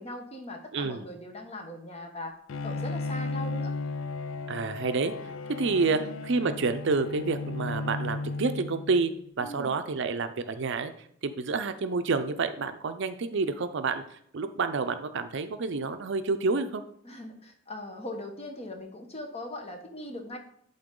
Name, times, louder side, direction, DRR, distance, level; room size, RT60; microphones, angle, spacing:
voice 1, 0.0-2.3 2.6-3.7 5.9-6.1 9.4-9.7 17.0-20.4, left 1 dB, 30° left, 4 dB, 1.1 m, -40 dB
voice 2, 0.7-1.0 4.5-5.1 5.6-9.1 9.4-10.9 11.2-14.0 14.3-16.8, right 4 dB, 65° right, 10 dB, 0.5 m, -28 dB
Bowed string instrument, 2.5-9.2, left 3 dB, 75° left, 0.4 m, -35 dB
11.5 x 3.9 x 3.8 m, 0.66 s
head